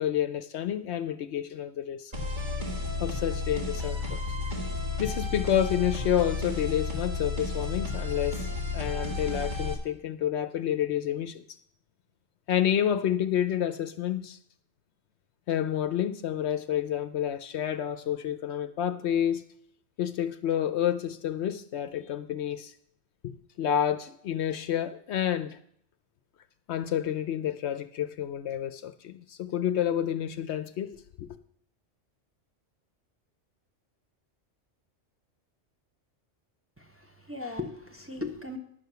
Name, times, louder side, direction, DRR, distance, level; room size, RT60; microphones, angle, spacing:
voice 1, 0.0-2.1 3.0-4.2 5.0-8.5 8.7-11.4 12.5-14.4 15.5-19.5 20.0-22.7 23.2-25.6 26.7-31.3, left 10 dB, 70° left, 0.8 m, -29 dB
sound 1, 2.1-9.7, left 3 dB, 40° right, 1.9 m, -32 dB
voice 2, 36.8-38.6, left 2 dB, 10° right, 0.9 m, -38 dB
10.5 x 6.5 x 6.7 m
omnidirectional pair, 1.3 m